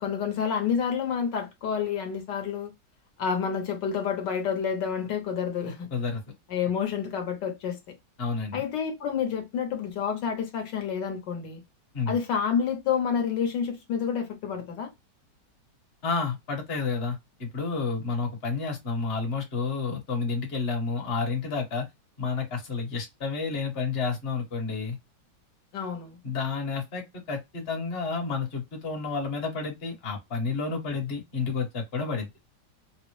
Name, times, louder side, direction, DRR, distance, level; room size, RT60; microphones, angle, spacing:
voice 1, 0.0-2.7 3.2-5.9 6.5-7.8 8.5-11.6 12.1-14.9 25.7-26.2, left 7 dB, 75° left, 1.5 m, -29 dB
voice 2, 5.9-6.2 8.2-8.6 11.9-12.2 16.0-21.9 22.2-25.0 26.2-32.3, left 4 dB, 40° left, 1.2 m, -30 dB
4.2 x 2.0 x 3.0 m
omnidirectional pair, 2.0 m